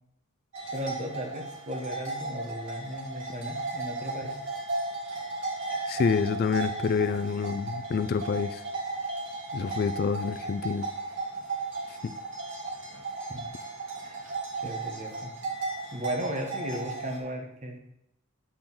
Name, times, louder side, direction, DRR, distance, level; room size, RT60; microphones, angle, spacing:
sound 1, 0.5-17.2, right 3 dB, 55° right, 2.0 m, -35 dB
voice 1, 0.7-4.4 13.3-13.5 14.0-14.2 14.6-15.3 15.9-17.8, equal, 35° right, 3 dB, 1.2 m, -36 dB
voice 2, 5.9-8.6 9.5-10.9, left 5 dB, 45° left, 11 dB, 0.3 m, -27 dB
8.6 x 3.8 x 6.0 m, 0.81 s
head